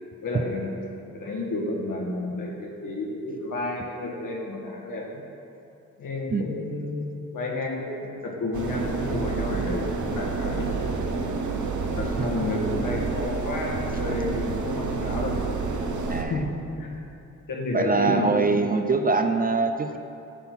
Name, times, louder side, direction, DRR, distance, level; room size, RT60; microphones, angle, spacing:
voice 1, 0.2-0.7 1.1-5.2 6.0-11.0 12.0-15.4 16.3-16.4 16.8-17.0 17.5-18.3, left 2 dB, 65° left, -2 dB, 1.6 m, -31 dB
sound 1, 8.5-16.2, right 4 dB, 60° right, 0.9 m, -29 dB
voice 2, 16.1-16.4 17.7-20.0, right 4 dB, 25° right, 6 dB, 0.4 m, -23 dB
9.9 x 3.9 x 5.9 m, 2.7 s
cardioid pair, 75°, 34 cm